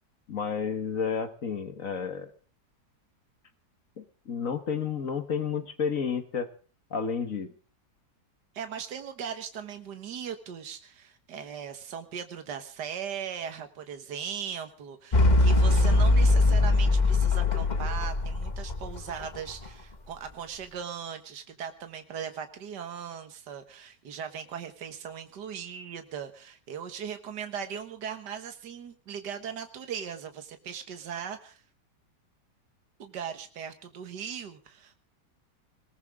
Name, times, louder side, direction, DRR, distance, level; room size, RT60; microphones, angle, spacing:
voice 1, 0.3-2.3 4.0-6.5 6.9-7.5, left 6 dB, 50° left, 9 dB, 1.7 m, -31 dB
voice 2, 8.5-31.6 33.0-34.9, right 8 dB, 75° right, 8 dB, 2.0 m, -39 dB
sound 1, 15.1-19.7, left 2 dB, 25° left, 1.4 m, -22 dB
20.5 x 18.5 x 3.6 m, 0.37 s
omnidirectional pair, 1.8 m